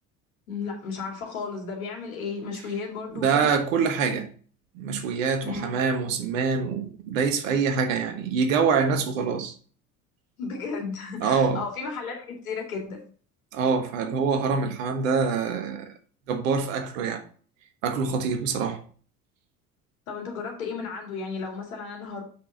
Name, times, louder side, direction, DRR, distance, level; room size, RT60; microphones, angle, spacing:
voice 1, 0.5-3.5 5.4-5.8 10.4-13.0 20.1-22.2, left 5 dB, 70° left, 2.4 m, -34 dB
voice 2, 3.1-4.3 4.7-9.5 11.2-11.6 13.5-15.9 16.3-17.2 17.8-18.8, right 5 dB, 65° right, 1.4 m, -25 dB
7.4 x 6.3 x 3.9 m
figure-of-eight pair, 60°, 43 cm